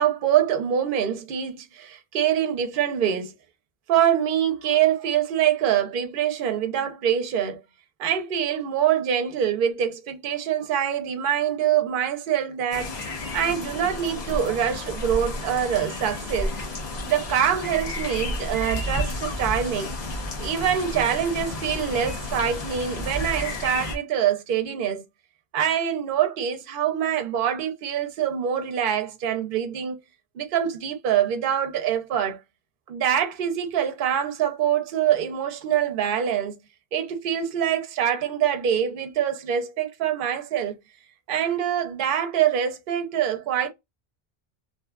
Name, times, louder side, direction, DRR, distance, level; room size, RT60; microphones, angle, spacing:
voice 1, 0.0-3.3 3.9-7.6 8.0-12.9 13.3-16.6 17.1-19.9 20.4-25.0 25.5-30.0 30.3-32.4 32.9-36.6 36.9-40.7 41.3-43.7, right 9 dB, 60° right, 0.7 m, -24 dB
sound 1, 12.7-24.0, left 2 dB, 45° left, 0.8 m, -31 dB
2.7 x 2.3 x 2.2 m
omnidirectional pair, 1.1 m